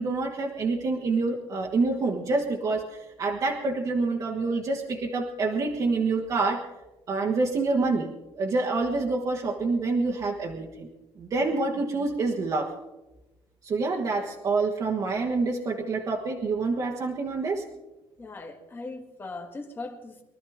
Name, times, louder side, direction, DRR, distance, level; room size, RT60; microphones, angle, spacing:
voice 1, 0.0-6.6 7.1-8.1 8.4-10.9 11.2-12.7 13.6-17.6, right 3 dB, 40° right, -1 dB, 1.5 m, -27 dB
voice 2, 18.2-20.2, left 3 dB, 20° left, 3 dB, 2.0 m, -39 dB
24.0 x 13.0 x 3.6 m, 1.1 s
cardioid pair, 155°, 10 cm